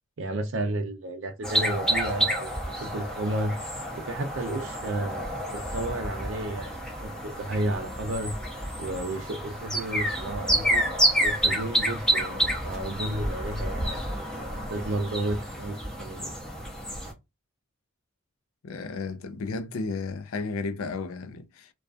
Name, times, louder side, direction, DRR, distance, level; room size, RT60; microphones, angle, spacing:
voice 1, 0.2-2.5 2.8-3.5 4.0-5.4 5.7-8.3 8.8-10.8 11.2-16.3, right 1 dB, 60° right, 0.5 m, -32 dB
sound 1, 1.4-17.1, equal, 5° left, 0.5 m, -29 dB
voice 2, 18.6-21.7, left 4 dB, 75° left, 0.4 m, -33 dB
2.4 x 2.3 x 2.4 m
head